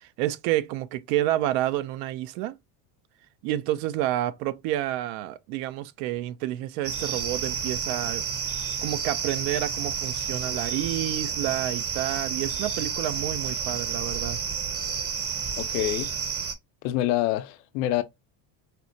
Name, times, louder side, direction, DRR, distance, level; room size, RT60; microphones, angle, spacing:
voice 1, 0.0-2.5 3.4-8.2 8.8-14.4, right 13 dB, 80° right, 0.6 m, -29 dB
sound 1, 6.8-16.5, right 6 dB, 30° right, 0.7 m, -30 dB
voice 2, 15.6-16.1 16.8-18.0, left 14 dB, 80° left, 0.7 m, -26 dB
4.2 x 2.1 x 2.6 m
supercardioid pair, 100°, 49 cm